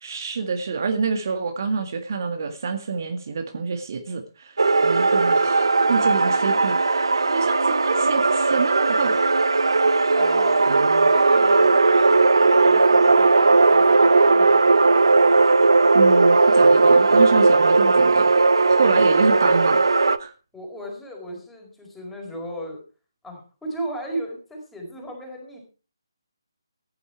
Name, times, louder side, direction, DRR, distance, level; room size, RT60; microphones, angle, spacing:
voice 1, 0.0-4.6 4.8-9.2 10.7-11.1 15.9-18.4 18.8-19.8 20.2-20.3, right 5 dB, 45° right, 5 dB, 1.9 m, -27 dB
sound 1, 4.6-20.2, right 3 dB, 65° right, 0.9 m, -17 dB
voice 2, 10.1-10.8 11.1-14.6 20.5-22.8 23.2-25.6, right 1 dB, 5° left, 0 dB, 4.7 m, -36 dB
15.0 x 11.0 x 4.6 m, 0.35 s
figure-of-eight pair, 145°, 3 cm